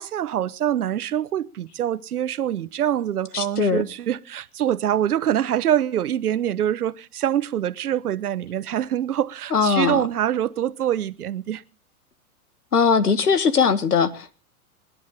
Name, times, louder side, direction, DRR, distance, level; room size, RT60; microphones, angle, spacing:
voice 1, 0.0-11.6, right 10 dB, 75° right, 1.1 m, -25 dB
voice 2, 3.3-3.8 9.5-10.0 12.7-14.4, left 5 dB, 90° left, 1.9 m, -20 dB
27.0 x 11.0 x 4.1 m
hypercardioid pair, 110°, 45 cm